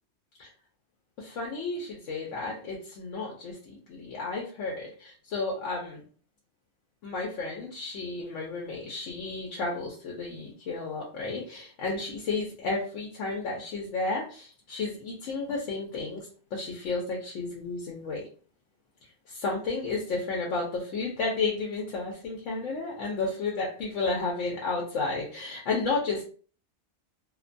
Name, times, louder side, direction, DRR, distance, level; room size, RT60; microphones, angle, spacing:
voice 1, 1.2-6.0 7.0-18.3 19.3-26.2, left 3 dB, 85° left, -1 dB, 0.9 m, -32 dB
2.5 x 2.2 x 2.5 m, 0.41 s
omnidirectional pair, 1.2 m